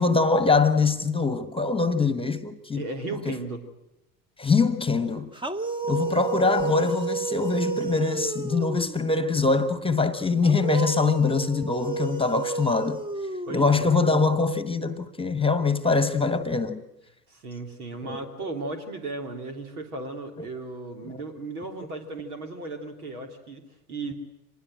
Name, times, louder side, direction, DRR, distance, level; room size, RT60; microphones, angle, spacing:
voice 1, 0.0-2.9 3.3-3.4 4.4-5.3 5.9-13.0 13.5-16.8 18.0-18.2 21.1-21.2, left 4 dB, 10° left, 1.3 m, -23 dB
voice 2, 2.7-3.6 13.4-13.9 17.3-24.2, right 3 dB, 80° right, 3.3 m, -36 dB
sound 1, 5.3-9.1 10.4-14.0, right 4 dB, 10° right, 1.1 m, -31 dB
25.5 x 20.5 x 7.7 m
hypercardioid pair, 80°, 44 cm